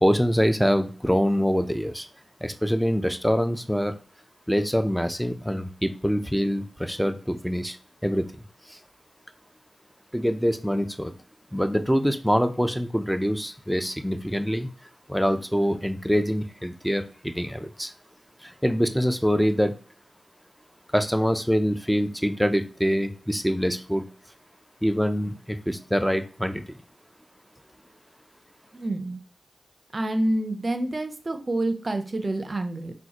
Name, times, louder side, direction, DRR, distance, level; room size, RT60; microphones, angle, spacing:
voice 1, 0.0-2.1 2.4-3.9 4.5-7.8 8.0-8.3 8.7-8.8 10.1-11.1 11.5-14.7 15.1-17.9 18.4-19.8 20.9-24.0 24.8-26.6, equal, ahead, 8 dB, 0.5 m, -24 dB
voice 2, 28.7-29.2 29.9-32.9, right 1 dB, 45° right, 7 dB, 0.6 m, -27 dB
3.9 x 2.1 x 2.9 m, 0.37 s
cardioid pair, 40°, 0 cm